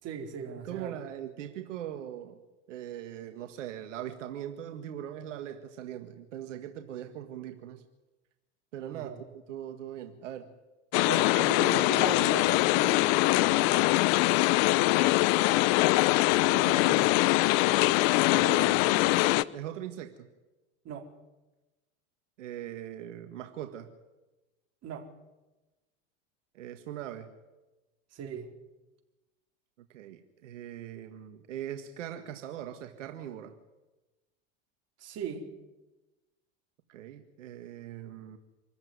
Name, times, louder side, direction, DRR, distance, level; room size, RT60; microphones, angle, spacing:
voice 1, 0.0-1.0 8.9-9.2 11.0-13.1 16.4-17.2 20.8-21.1 24.8-25.1 28.1-28.5 35.0-35.5, right 7 dB, 45° right, 3 dB, 4.4 m, -39 dB
voice 2, 0.6-2.4 2.7-7.8 8.7-10.5 13.7-14.0 18.3-20.3 22.4-23.9 26.5-27.3 29.9-33.6 36.9-38.4, right 11 dB, 85° right, 7 dB, 1.8 m, -41 dB
sound 1, 10.9-19.4, left 20 dB, 60° left, 0.8 m, -23 dB
26.0 x 14.5 x 9.6 m, 1.1 s
supercardioid pair, 110°, 36 cm